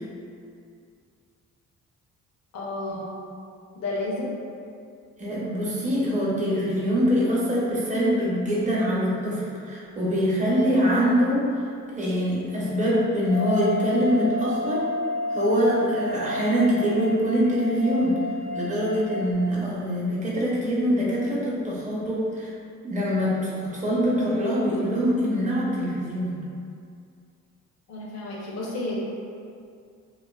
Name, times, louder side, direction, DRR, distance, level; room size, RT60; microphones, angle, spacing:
voice 1, 2.5-3.3 3.7-4.3 27.9-29.0, left 2 dB, 60° left, -4 dB, 0.7 m, -31 dB
voice 2, 5.2-14.9 15.3-18.2 18.5-22.5 22.8-26.4, equal, 25° right, -7 dB, 0.7 m, -24 dB
sound 1, 13.3-19.3, left 1 dB, 25° left, 0.5 m, -31 dB
2.5 x 2.3 x 2.3 m, 2.3 s
cardioid pair, 90°, 30 cm